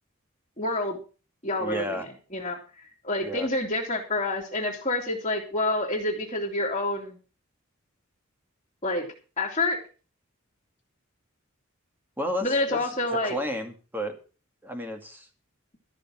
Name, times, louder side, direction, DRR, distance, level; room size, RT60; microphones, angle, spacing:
voice 1, 0.6-1.0 1.4-7.2 8.8-9.1 9.4-9.8 12.4-13.3, left 2 dB, 30° left, -4 dB, 2.6 m, -28 dB
voice 2, 1.6-2.1 3.2-3.5 12.2-12.8 13.3-14.2 14.6-15.3, equal, 10° right, 4 dB, 2.1 m, -32 dB
13.5 x 6.6 x 7.5 m, 0.36 s
head